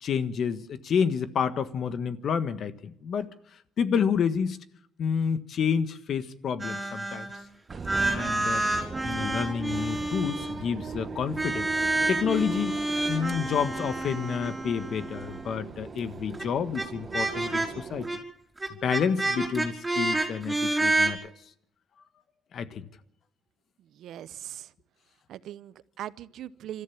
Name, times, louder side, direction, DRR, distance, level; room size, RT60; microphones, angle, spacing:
voice 1, 0.0-3.3 3.8-4.6 5.0-7.3 8.0-8.6 9.0-11.7 12.1-12.8 13.1-18.1 18.8-21.2 22.5-22.9, left 7 dB, 65° left, 1.4 m, -29 dB
sound 1, 6.6-7.4 7.7-10.6 11.3-15.6 16.3-16.4 16.7-16.8 17.1-17.7 18.0-18.2 18.6-21.1, right 2 dB, 15° right, 4.6 m, -29 dB
sound 2, 7.7-18.1, right 5 dB, 40° right, 1.2 m, -40 dB
voice 2, 24.0-24.7 25.3-26.8, right 11 dB, 80° right, 0.8 m, -40 dB
26.5 x 14.0 x 7.4 m
cardioid pair, 90°, 0 cm